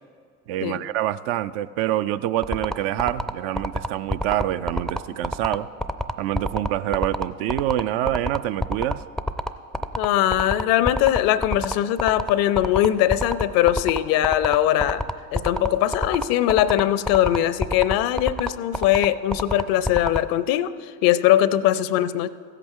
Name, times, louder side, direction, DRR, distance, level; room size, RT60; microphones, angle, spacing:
voice 1, 0.5-5.7 6.2-9.0, right 13 dB, 65° right, 14 dB, 0.5 m, -26 dB
sound 1, 2.4-20.2, equal, ahead, 0.4 m, -26 dB
voice 2, 10.0-15.0 15.3-20.7 21.0-22.3, left 12 dB, 60° left, 16 dB, 0.6 m, -21 dB
15.5 x 8.2 x 3.7 m, 2.2 s
hypercardioid pair, 70°, 39 cm